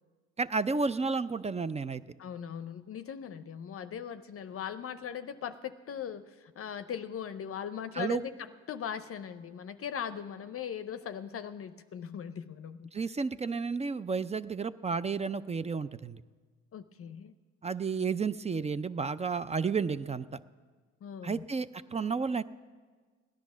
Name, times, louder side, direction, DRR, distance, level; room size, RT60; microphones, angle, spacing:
voice 1, 0.4-2.0 7.9-8.2 12.9-16.2 17.6-20.3 21.2-22.4, right 5 dB, 20° right, 15 dB, 0.4 m, -32 dB
voice 2, 2.2-8.3 8.7-12.9 16.7-17.3 21.0-21.4, left 8 dB, 50° left, 11 dB, 0.6 m, -39 dB
17.0 x 10.5 x 6.1 m, 1.5 s
cardioid pair, 90°, 30 cm